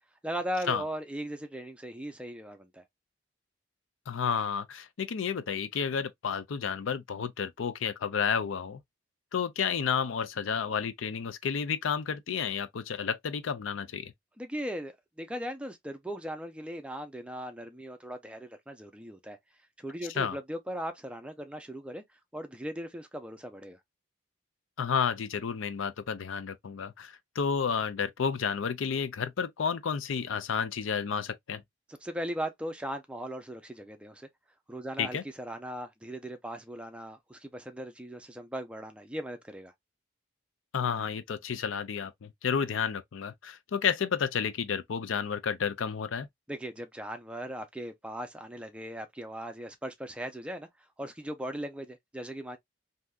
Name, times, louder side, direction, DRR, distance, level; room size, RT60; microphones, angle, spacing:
voice 1, 0.2-2.8 14.4-19.4 19.8-22.0 22.3-23.8 32.0-34.3 34.7-39.7 46.5-50.7 51.0-52.6, equal, 5° right, 0.5 m, -38 dB
voice 2, 4.1-8.8 9.3-14.1 20.2-20.4 24.8-31.6 35.0-35.2 40.7-46.3, left 6 dB, 90° left, 0.5 m, -31 dB
3.5 x 2.7 x 2.3 m
head